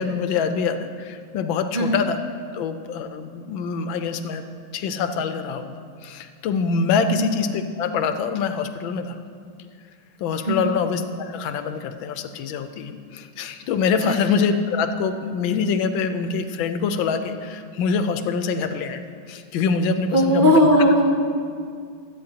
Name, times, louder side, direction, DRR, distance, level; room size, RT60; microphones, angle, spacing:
voice 1, 0.0-2.2 2.5-4.4 4.7-9.2 10.2-19.0 19.3-20.7, left 5 dB, 75° left, 8 dB, 1.4 m, -25 dB
voice 2, 20.1-21.1, equal, 60° right, -1 dB, 0.5 m, -18 dB
21.5 x 8.4 x 2.8 m, 2.2 s
omnidirectional pair, 2.2 m